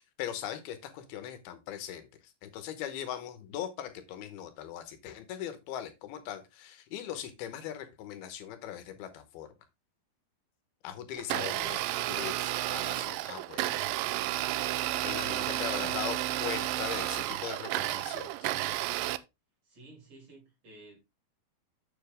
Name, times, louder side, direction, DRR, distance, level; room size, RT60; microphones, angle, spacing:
voice 1, 0.0-9.5 10.8-11.8 12.1-13.7 15.0-18.5, left 10 dB, 85° left, 2.9 m, -40 dB
Domestic sounds home sounds, 11.2-19.2, right 15 dB, 80° right, 2.0 m, -32 dB
voice 2, 11.4-12.4 14.8-15.9 19.6-21.0, right 2 dB, 45° right, 4.4 m, -53 dB
7.3 x 6.9 x 3.5 m
omnidirectional pair, 4.4 m